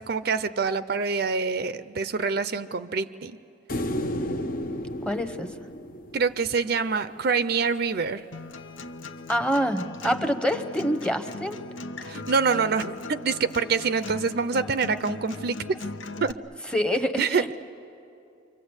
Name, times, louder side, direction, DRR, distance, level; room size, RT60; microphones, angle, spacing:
voice 1, 0.0-3.4 6.1-8.2 12.1-15.6 16.2-16.4 17.2-17.4, right 5 dB, 55° right, 13 dB, 0.6 m, -26 dB
sound 1, 3.7-7.0 9.5-9.6, equal, 45° left, 0.8 m, -32 dB
voice 2, 5.0-5.5 9.3-11.6 12.0-12.2 16.7-17.6, equal, 5° left, 7 dB, 0.9 m, -26 dB
Acoustic guitar, 8.3-16.3, left 3 dB, 85° left, 0.9 m, -38 dB
29.5 x 25.0 x 8.1 m, 2.6 s
head